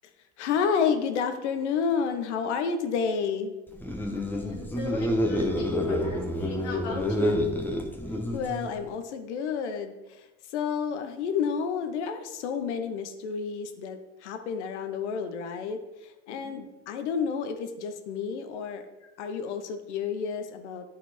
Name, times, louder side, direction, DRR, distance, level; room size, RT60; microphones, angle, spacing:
voice 1, 0.4-3.5 8.3-9.9 10.5-15.8 16.3-18.8 19.2-20.9, left 6 dB, 80° left, 8 dB, 1.0 m, -30 dB
sound 1, 3.7-8.8, left 1 dB, 5° left, 1.0 m, -28 dB
voice 2, 4.1-7.3 16.3-16.6, left 4 dB, 45° left, -1 dB, 1.3 m, -39 dB
9.3 x 4.5 x 4.2 m, 1.1 s
hypercardioid pair, 90°, 34 cm